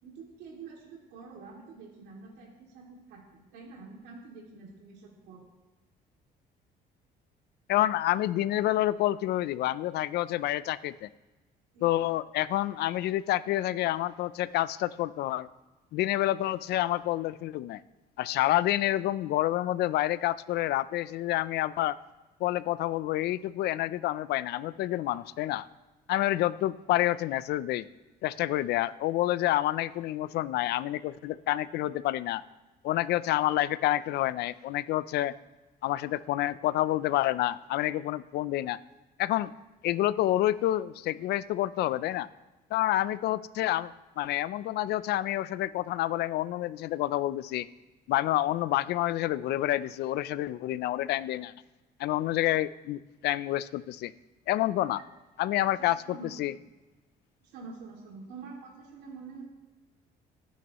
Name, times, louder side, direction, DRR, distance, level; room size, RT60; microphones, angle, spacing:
voice 1, 0.0-5.5 11.7-11.9 55.0-55.1 55.6-56.3 57.4-59.5, right 4 dB, 85° right, -2 dB, 2.5 m, -47 dB
voice 2, 7.7-11.1 11.8-15.5 15.9-17.8 18.2-21.9 22.4-25.7 26.1-27.9 28.2-32.4 32.8-35.3 35.8-38.8 39.2-39.5 39.8-42.3 42.7-47.7 48.1-51.5 52.0-54.1 54.5-55.0 55.4-56.5, left 14 dB, 75° left, 16 dB, 0.5 m, -28 dB
27.0 x 9.4 x 3.0 m, 1.1 s
cardioid pair, 110°, 17 cm